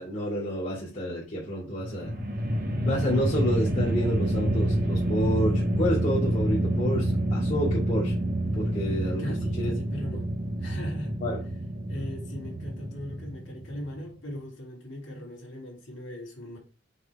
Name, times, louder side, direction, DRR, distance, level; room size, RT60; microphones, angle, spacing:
voice 1, 0.0-2.1 2.8-8.1 8.5-9.2 9.6-9.7 11.2-11.4, equal, 45° left, 2.4 m, -29 dB
sound 1, 1.7-14.1, right 1 dB, 50° right, 1.0 m, -28 dB
voice 2, 9.2-10.3 10.6-11.2 11.9-16.6, left 1 dB, 70° left, 2.6 m, -39 dB
5.6 x 3.9 x 4.8 m
head